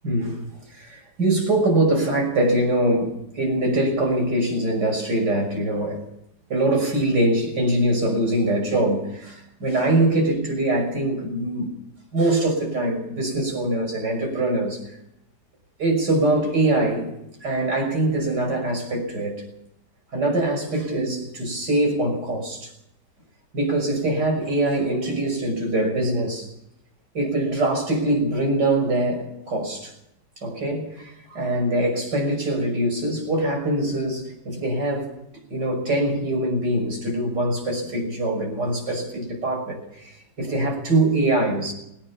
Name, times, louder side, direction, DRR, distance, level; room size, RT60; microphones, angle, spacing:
voice 1, 0.0-0.4 0.8-6.0 6.5-11.7 12.1-14.8 15.8-17.1 17.4-19.4 20.1-22.7 23.5-26.5 27.1-29.9 30.4-35.1 35.5-40.1 40.4-41.7, right 1 dB, 80° right, 2 dB, 6.8 m, -23 dB
19.5 x 19.0 x 7.2 m, 0.80 s
omnidirectional pair, 1.8 m